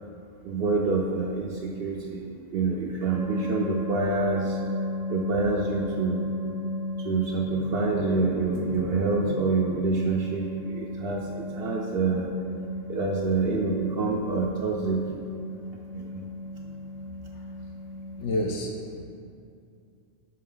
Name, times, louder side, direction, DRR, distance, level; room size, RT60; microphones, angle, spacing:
voice 1, 0.4-2.2 2.5-4.6 5.1-6.3 7.0-12.3 12.9-15.0 15.9-16.2 16.6-16.7, right 4 dB, 60° right, 0 dB, 0.7 m, -27 dB
sound 1, 3.1-18.4, left 1 dB, 85° right, 1.0 m, -34 dB
voice 2, 18.2-19.0, left 1 dB, 65° left, 1 dB, 0.9 m, -29 dB
5.5 x 4.6 x 3.8 m, 2.4 s
omnidirectional pair, 1.3 m